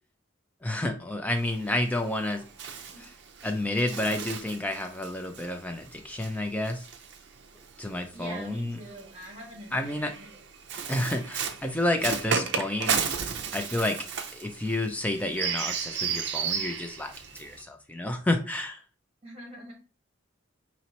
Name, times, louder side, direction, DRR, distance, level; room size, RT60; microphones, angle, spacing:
voice 1, 0.6-2.4 3.4-6.9 7.8-8.8 9.7-10.1 10.9-13.0 13.5-14.0 14.3-18.8, left 1 dB, 5° left, 5 dB, 0.4 m, -30 dB
Bird, 1.4-7.9 8.8-17.6, right 6 dB, 55° right, 0.5 m, -34 dB
voice 2, 8.1-10.4 19.2-19.7, right 1 dB, 30° right, -1 dB, 1.5 m, -44 dB
4.3 x 3.0 x 2.9 m, 0.37 s
head